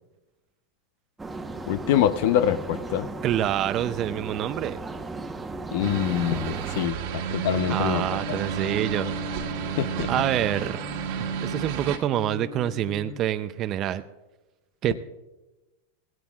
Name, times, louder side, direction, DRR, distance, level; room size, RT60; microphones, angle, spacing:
sound 1, 1.2-6.9, right 3 dB, 10° right, 1.0 m, -36 dB
voice 1, 1.7-3.1 5.7-8.4 9.8-10.1, left 11 dB, 60° left, 12 dB, 0.6 m, -25 dB
voice 2, 3.2-4.8 7.7-9.1 10.1-10.8 11.4-14.0 14.8-15.0, right 12 dB, 35° right, 11 dB, 0.5 m, -26 dB
sound 2, 5.8-12.0, right 8 dB, 60° right, 1.6 m, -31 dB
sound 3, 7.5-13.2, left 9 dB, 25° left, 0.8 m, -40 dB
17.0 x 17.0 x 2.4 m, 1.1 s
supercardioid pair, 130°, 0 cm